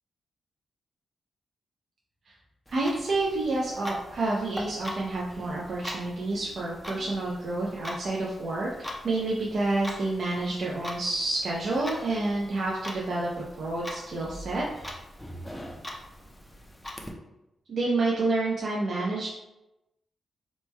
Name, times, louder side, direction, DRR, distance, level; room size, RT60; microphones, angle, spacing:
Clock, 2.7-17.1, left 1 dB, 10° left, 0.4 m, -42 dB
voice 1, 2.7-14.9 17.7-19.3, right 2 dB, 60° right, -4 dB, 0.5 m, -29 dB
3.1 x 2.1 x 3.2 m, 0.93 s
wide cardioid pair, 110°, 0 cm